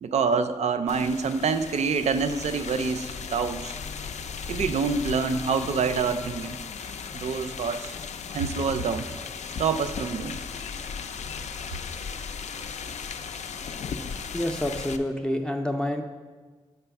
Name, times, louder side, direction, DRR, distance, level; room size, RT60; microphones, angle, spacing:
voice 1, 0.0-3.7 4.5-6.6 7.1-7.9 8.3-9.1 9.6-10.4, right 5 dB, 75° right, 10 dB, 0.4 m, -26 dB
sound 1, 0.9-15.0, left 6 dB, 90° left, 0.4 m, -36 dB
voice 2, 14.3-16.0, left 1 dB, 5° left, 4 dB, 0.3 m, -28 dB
7.9 x 3.4 x 5.7 m, 1.4 s
wide cardioid pair, 165°, 12 cm